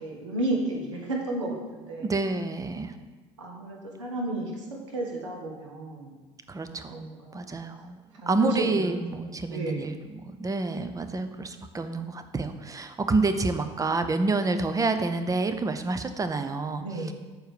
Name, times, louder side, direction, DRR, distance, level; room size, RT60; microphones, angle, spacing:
voice 1, 0.0-2.1 3.4-4.6 4.9-6.2 6.9-7.6 8.2-9.0 9.5-10.0 16.8-17.1, right 1 dB, 90° right, 0 dB, 1.3 m, -32 dB
voice 2, 2.0-3.0 6.5-7.0 7.3-8.0 8.3-17.1, right 3 dB, 20° right, 9 dB, 0.7 m, -28 dB
6.5 x 4.6 x 6.7 m, 1.2 s
hypercardioid pair, 65°, 15 cm